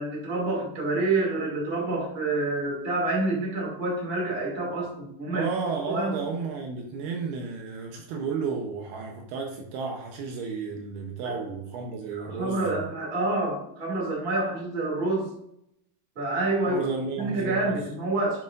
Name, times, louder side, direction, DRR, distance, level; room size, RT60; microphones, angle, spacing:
voice 1, 0.0-5.5 5.9-6.2 11.2-11.4 12.1-15.3 16.2-16.9 17.2-18.4, right 2 dB, 20° right, -3 dB, 1.8 m, -28 dB
voice 2, 5.3-12.8 16.7-17.8, right 5 dB, 75° right, 2 dB, 2.7 m, -32 dB
8.1 x 7.1 x 2.6 m, 0.75 s
omnidirectional pair, 4.9 m